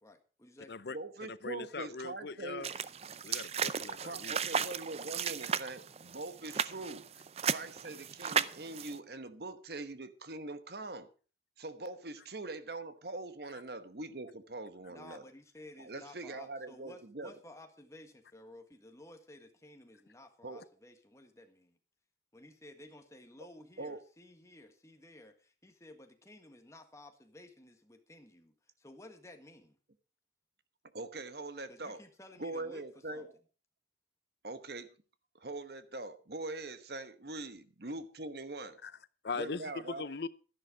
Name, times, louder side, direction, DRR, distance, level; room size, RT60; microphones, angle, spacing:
voice 1, 0.0-0.7 14.9-21.8 22.3-29.8 31.7-32.8 33.1-33.3, left 1 dB, 15° left, 1.5 m, -54 dB
voice 2, 0.9-2.7 4.0-7.0 7.4-11.1 11.6-15.2 15.8-17.3 20.4-20.6 23.8-24.0 30.9-32.0 32.4-33.3 34.4-34.9 35.3-38.8 39.3-40.1, right 2 dB, 60° right, 1.1 m, -42 dB
voice 3, 1.4-2.7 3.2-4.4 38.8-38.9 39.2-39.6 40.0-40.3, left 4 dB, 60° left, 0.6 m, -40 dB
sound 1, 2.6-9.0, right 7 dB, 35° right, 0.5 m, -35 dB
12.5 x 11.0 x 4.9 m
head